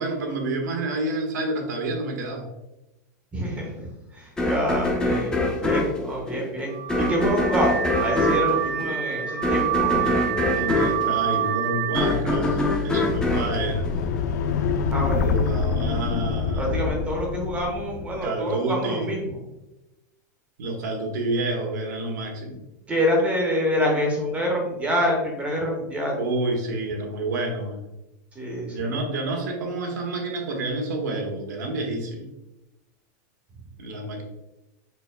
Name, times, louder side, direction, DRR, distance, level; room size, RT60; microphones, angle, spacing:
voice 1, 0.0-2.4 9.7-13.9 15.2-16.7 18.2-19.1 20.6-22.6 26.1-27.8 28.7-32.3 33.8-34.2, right 2 dB, 85° right, 1 dB, 1.2 m, -29 dB
voice 2, 3.3-3.7 4.1-6.7 7.0-10.0 14.9-15.4 16.6-19.3 22.9-26.2 28.3-28.9, equal, 15° right, 0 dB, 0.9 m, -26 dB
sound 1, 4.4-14.6, left 2 dB, 10° left, 0.5 m, -25 dB
Car / Alarm, 6.7-12.2, right 11 dB, 60° right, 1.0 m, -27 dB
sound 2, 13.0-18.3, left 5 dB, 75° left, 0.4 m, -26 dB
5.4 x 4.4 x 2.2 m, 0.96 s
supercardioid pair, 160°, 9 cm